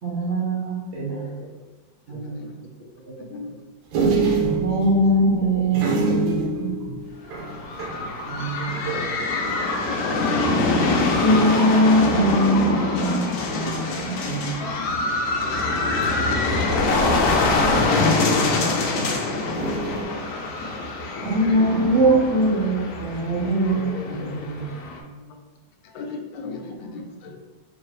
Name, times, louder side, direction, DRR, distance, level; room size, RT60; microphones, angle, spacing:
voice 1, 0.0-1.2 2.1-2.3 4.6-6.9 8.3-8.9 11.2-14.7 21.2-24.7 25.0-25.1, right 1 dB, 50° right, -7 dB, 1.0 m, -22 dB
voice 2, 0.9-1.5 2.1-2.4 2.9-3.6 5.4-5.6 5.9-6.4 8.9-9.9 10.7-11.2 13.5-14.4 15.1-16.5 18.8-20.3 23.3-24.5, right 1 dB, 65° right, -4 dB, 0.6 m, -39 dB
voice 3, 2.1-2.5 3.3-3.6 9.9-10.1 14.1-14.2 14.8-14.9 20.8-20.9 21.2-21.7 25.8-27.4, left 4 dB, 90° left, 3 dB, 1.3 m, -38 dB
sound 1, 3.9-9.9 10.3-10.4 10.6-11.1 11.9-12.5 13.9-14.4 16.0-17.3 19.5-20.0, right 4 dB, 85° right, 1.4 m, -27 dB
sound 2, 7.3-25.0, left 3 dB, 70° left, 1.0 m, -24 dB
3.8 x 2.7 x 3.1 m, 1.3 s
omnidirectional pair, 2.0 m